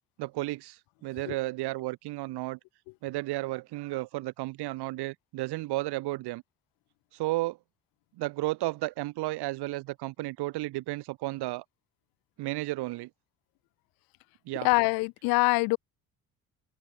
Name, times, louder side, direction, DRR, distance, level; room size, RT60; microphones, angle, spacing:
voice 1, 0.2-2.6 3.0-6.4 7.1-7.6 8.2-11.6 12.4-13.1 14.4-14.7, right 19 dB, 60° right, 3.2 m, -33 dB
voice 2, 14.6-15.8, left 26 dB, 50° left, 0.5 m, -24 dB
open air
figure-of-eight pair, 55°, 45 cm